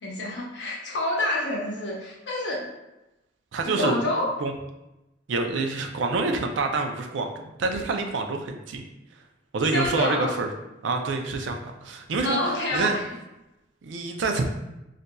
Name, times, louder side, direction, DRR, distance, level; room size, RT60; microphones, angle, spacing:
voice 1, 0.0-2.7 3.6-4.3 9.7-10.4 12.2-13.0, left 1 dB, 65° left, -2 dB, 0.8 m, -27 dB
voice 2, 3.5-4.0 4.4-4.5 5.3-8.8 9.5-10.5 10.8-13.0 13.8-14.4, right 3 dB, 75° right, 4 dB, 0.4 m, -27 dB
4.0 x 2.4 x 2.2 m, 0.95 s
head